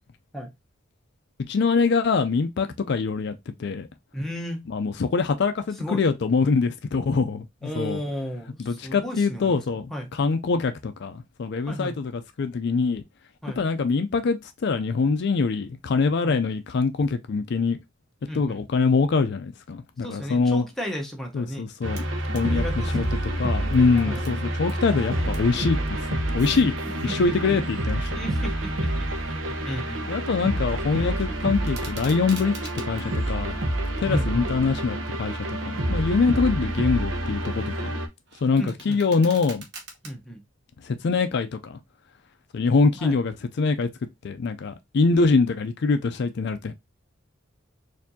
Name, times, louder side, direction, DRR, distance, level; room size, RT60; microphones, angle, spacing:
voice 1, 1.5-3.9 4.7-8.0 8.6-13.0 13.6-17.8 18.3-20.6 21.3-22.0 22.3-23.1 23.4-26.7 27.0-28.2 30.1-32.5 32.8-33.6 34.0-37.9 38.4-39.6 40.8-41.8 42.5-43.9 44.2-46.7, left 4 dB, 60° left, 0.4 m, -24 dB
voice 2, 4.1-4.6 5.8-6.0 7.6-9.6 9.9-10.1 11.7-12.0 13.4-13.6 16.2-16.4 18.3-18.6 20.0-21.7 22.4-23.2 24.0-24.2 27.0-27.3 28.1-29.1 29.6-30.2 34.0-34.5 36.6-37.4 38.6-39.0 40.0-40.4 43.0-43.2, equal, ahead, 0.9 m, -34 dB
sound 1, 21.8-38.1, right 1 dB, 75° right, 0.8 m, -28 dB
sound 2, 21.9-22.5 22.8-24.8 25.1-25.5 26.2-27.1 27.8-29.9 30.2-30.6 30.9-33.1 33.6-34.5 35.0-35.3 35.9-36.4 36.8-40.1, right 4 dB, 55° right, 1.0 m, -47 dB
sound 3, 22.7-34.9, left 1 dB, 30° left, 0.8 m, -44 dB
4.3 x 2.7 x 2.7 m
head